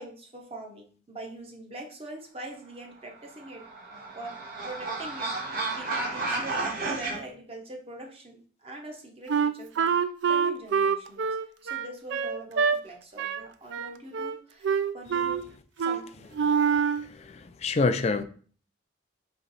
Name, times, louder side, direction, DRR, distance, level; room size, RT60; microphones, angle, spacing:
voice 1, 0.0-3.6 4.1-11.2 11.6-15.4 15.8-16.3, right 2 dB, 30° right, 1 dB, 0.8 m, -43 dB
sound 1, 3.3-7.2, right 3 dB, 50° right, 1.3 m, -32 dB
Wind instrument woodwind instrument, 9.3-12.8 13.2-13.4 13.7-14.4 14.6-15.4 15.8-16.0 16.3-17.1, right 6 dB, 70° right, 0.4 m, -25 dB
voice 2, 17.0-18.2, left 3 dB, 35° left, 9 dB, 0.4 m, -27 dB
4.4 x 3.0 x 4.0 m, 0.44 s
head